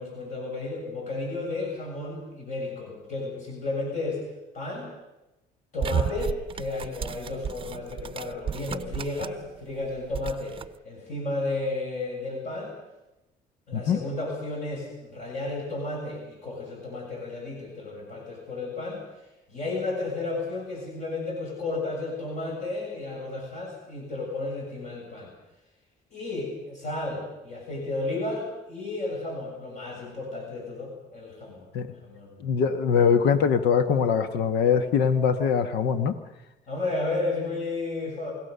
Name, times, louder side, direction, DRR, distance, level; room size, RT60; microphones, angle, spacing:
voice 1, 0.0-4.2 4.5-4.9 5.7-10.6 10.8-12.8 13.7-25.3 26.1-32.6 36.7-38.3, left 2 dB, 45° left, -1 dB, 7.9 m, -33 dB
sound 1, 5.8-9.5 9.8-10.7, right 8 dB, 30° right, 0.7 m, -33 dB
voice 2, 32.4-36.2, left 6 dB, 80° left, 10 dB, 1.4 m, -22 dB
29.0 x 17.0 x 6.9 m, 0.97 s
cardioid pair, 110°, 17 cm